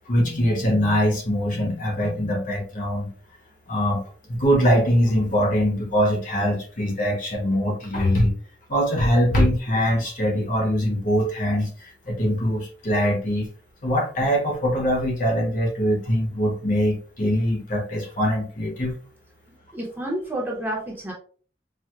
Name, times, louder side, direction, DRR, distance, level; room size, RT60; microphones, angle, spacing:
voice 1, 0.1-3.1 3.7-4.0 4.3-8.3 8.7-13.5 13.8-18.9, equal, 45° left, 1 dB, 0.8 m, -22 dB
voice 2, 19.7-21.1, right 1 dB, 10° right, -3 dB, 0.7 m, -29 dB
4.5 x 2.1 x 2.3 m, 0.41 s
head